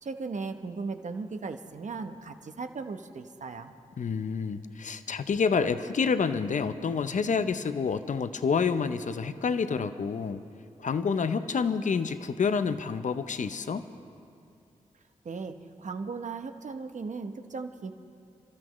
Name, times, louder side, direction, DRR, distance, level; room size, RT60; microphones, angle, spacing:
voice 1, 0.0-3.7 15.2-17.9, right 4 dB, 60° right, 7 dB, 0.9 m, -37 dB
voice 2, 4.0-10.4 10.8-13.9, left 5 dB, 65° left, 11 dB, 0.6 m, -28 dB
29.5 x 13.0 x 3.1 m, 2.4 s
cardioid pair, 55°, 14 cm